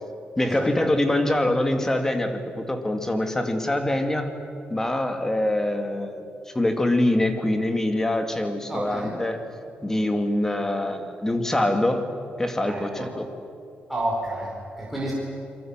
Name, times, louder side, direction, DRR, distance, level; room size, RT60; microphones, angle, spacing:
voice 1, 0.4-4.3 4.7-9.4 9.8-12.1 12.4-13.3, left 1 dB, 15° left, 6 dB, 2.4 m, -24 dB
voice 2, 8.7-9.1 12.7-13.1 13.9-15.1, right 1 dB, 5° right, -5 dB, 5.1 m, -30 dB
28.5 x 23.5 x 7.5 m, 2.4 s
cardioid pair, 125°, 4 cm